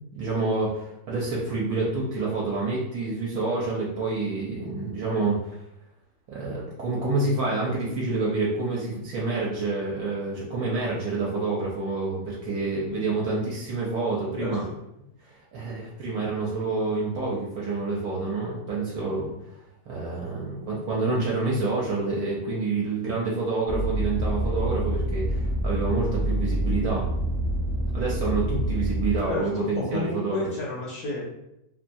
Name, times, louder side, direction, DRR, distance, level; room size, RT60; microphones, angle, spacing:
voice 1, 0.0-5.4 6.3-14.6 15.2-19.3 19.9-27.1 27.9-30.4, right 3 dB, 70° right, -5 dB, 1.0 m, -28 dB
voice 2, 14.4-14.7 16.9-17.0 29.3-31.2, left 2 dB, 70° left, -4 dB, 1.0 m, -31 dB
sound 1, 23.7-29.2, right 1 dB, 25° left, 0.5 m, -27 dB
2.9 x 2.3 x 2.5 m, 0.84 s
omnidirectional pair, 1.7 m